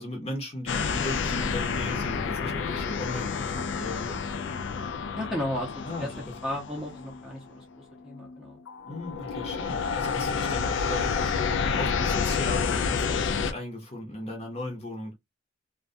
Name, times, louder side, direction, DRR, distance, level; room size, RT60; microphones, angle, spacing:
voice 1, 0.0-4.2 5.8-6.3 8.9-11.3 11.8-15.1, left 1 dB, 30° left, 0.8 m, -37 dB
sound 1, 0.7-7.6 8.1-8.4 8.7-13.5, left 5 dB, 60° left, 0.3 m, -29 dB
voice 2, 5.2-6.1 6.4-8.6, left 1 dB, 5° right, 0.6 m, -34 dB
2.3 x 2.2 x 2.5 m
head